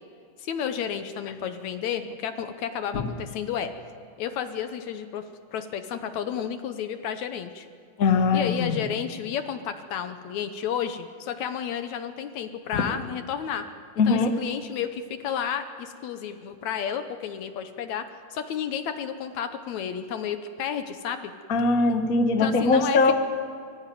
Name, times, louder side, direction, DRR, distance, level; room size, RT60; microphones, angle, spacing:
voice 1, 0.4-3.7 4.2-5.2 5.5-7.7 8.3-13.7 14.1-21.3 21.9-22.0 22.4-23.0, left 8 dB, 70° left, 9 dB, 2.1 m, -31 dB
voice 2, 8.0-8.9 12.7-12.9 14.0-14.3 21.5-23.1, left 4 dB, 45° left, 5 dB, 1.2 m, -21 dB
24.0 x 15.0 x 9.3 m, 2.3 s
omnidirectional pair, 3.7 m